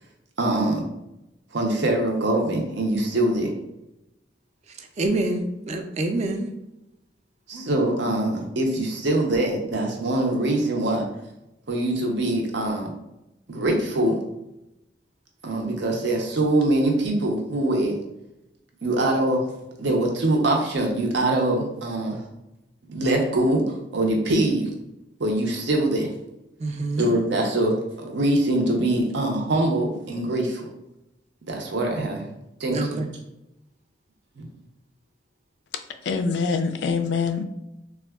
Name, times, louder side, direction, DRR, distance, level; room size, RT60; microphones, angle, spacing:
voice 1, 0.4-0.8 1.5-3.5 7.5-11.1 11.7-12.9 13.5-14.2 15.4-17.9 18.8-19.4 19.8-22.2 22.9-24.7 25.2-26.1 27.0-30.7 31.5-32.3 32.6-32.8 34.4-34.5, right 1 dB, 80° right, 1 dB, 0.6 m, -23 dB
voice 2, 4.8-6.5 26.6-27.1 32.7-33.1, right 2 dB, 40° right, 5 dB, 0.4 m, -26 dB
voice 3, 36.1-37.4, left 5 dB, 70° left, 8 dB, 0.3 m, -24 dB
3.5 x 2.2 x 2.3 m, 0.89 s
head